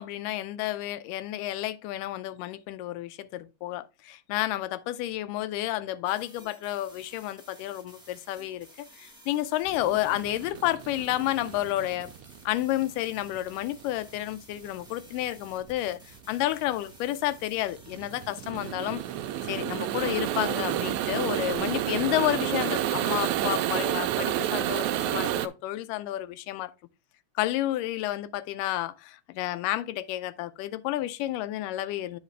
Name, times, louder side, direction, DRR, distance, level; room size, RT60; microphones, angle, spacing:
voice 1, 0.0-12.1 12.5-16.0 16.3-19.0 19.4-26.7 27.4-32.2, left 15 dB, 85° left, 2.2 m, -30 dB
sound 1, 6.0-23.8, equal, 5° right, 0.8 m, -54 dB
sound 2, 9.7-25.5, right 12 dB, 80° right, 1.7 m, -30 dB
9.0 x 5.0 x 3.2 m
omnidirectional pair, 3.7 m